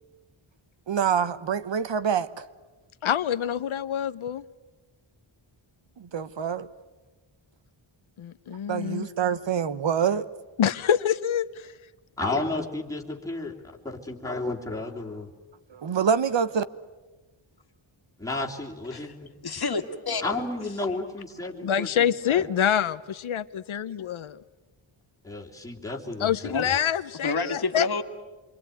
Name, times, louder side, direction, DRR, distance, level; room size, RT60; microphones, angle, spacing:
voice 1, 0.9-2.3 6.0-6.7 8.7-10.2 15.8-16.6, right 7 dB, 65° right, 1.0 m, -25 dB
voice 2, 3.0-4.4 8.2-9.1 10.6-11.7 21.6-24.4 26.2-28.0, left 9 dB, 85° left, 0.9 m, -26 dB
voice 3, 12.2-13.5 13.8-15.3 18.2-19.3 20.2-22.5 25.2-26.8, left 2 dB, 5° left, 3.2 m, -32 dB
voice 4, 19.4-20.2 26.5-26.7 27.2-28.0, left 4 dB, 50° left, 1.9 m, -28 dB
27.5 x 23.5 x 9.2 m
wide cardioid pair, 145°, 48 cm